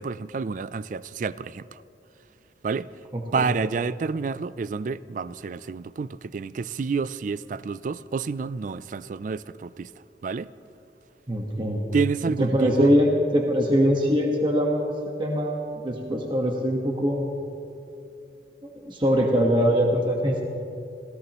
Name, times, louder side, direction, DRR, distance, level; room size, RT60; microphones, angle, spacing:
voice 1, 0.0-1.8 2.6-2.9 3.3-9.9 10.2-10.5 11.9-12.9, right 5 dB, 45° right, 17 dB, 0.3 m, -29 dB
voice 2, 3.1-3.5 11.3-11.8 12.4-17.3 18.7-20.4, equal, 25° right, -1 dB, 1.3 m, -23 dB
27.0 x 16.5 x 3.0 m, 2.7 s
head